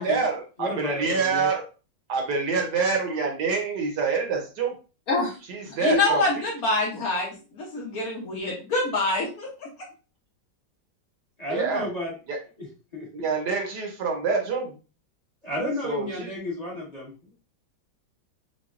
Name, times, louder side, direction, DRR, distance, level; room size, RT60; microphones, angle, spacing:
voice 1, 0.0-1.6 2.1-4.7 5.5-6.3 11.5-11.9 12.3-12.4 13.1-14.7 15.8-16.3, right 4 dB, 65° right, 2 dB, 1.3 m, -26 dB
voice 2, 0.6-1.5 11.4-12.1 12.6-12.7 12.9-13.1 15.4-17.3, left 1 dB, 25° left, -5 dB, 1.0 m, -32 dB
voice 3, 5.8-9.7, left 2 dB, 60° left, -1 dB, 1.1 m, -26 dB
5.9 x 2.2 x 2.4 m, 0.34 s
omnidirectional pair, 2.1 m